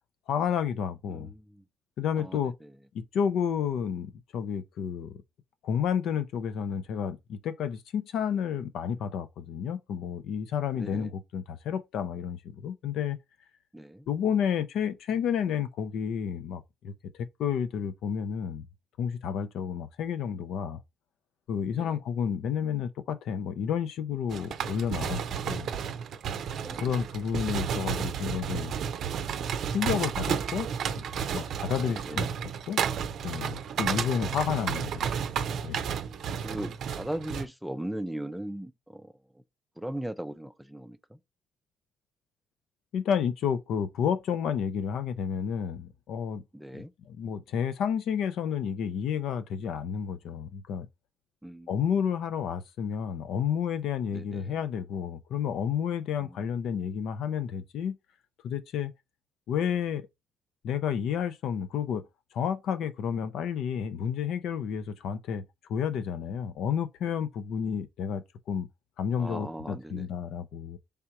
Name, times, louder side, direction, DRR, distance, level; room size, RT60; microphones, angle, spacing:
voice 1, 0.3-1.3 2.0-2.5 2.9-5.2 5.6-13.2 14.1-18.7 19.0-20.8 21.5-25.7 26.8-28.7 29.7-30.7 31.0-31.1 31.3-32.3 32.7-32.8 33.2-35.1 35.6-35.8 42.9-46.4 46.7-50.9 51.7-58.0 58.4-58.9 59.5-60.1 60.6-62.0 62.3-65.4 65.7-68.7 69.0-70.8, left 8 dB, 80° left, 0.5 m, -31 dB
voice 2, 1.1-1.6 2.2-2.7 10.8-11.1 13.7-14.1 21.7-22.0 26.6-27.1 31.8-32.3 34.2-34.4 36.4-39.4 39.8-41.2 46.5-46.9 51.4-51.7 54.1-54.6 56.2-56.4 69.2-70.1, right 1 dB, 5° right, 0.4 m, -39 dB
sound 1, 24.3-37.5, right 7 dB, 70° right, 0.5 m, -32 dB
3.4 x 2.8 x 4.6 m
cardioid pair, 90°, 0 cm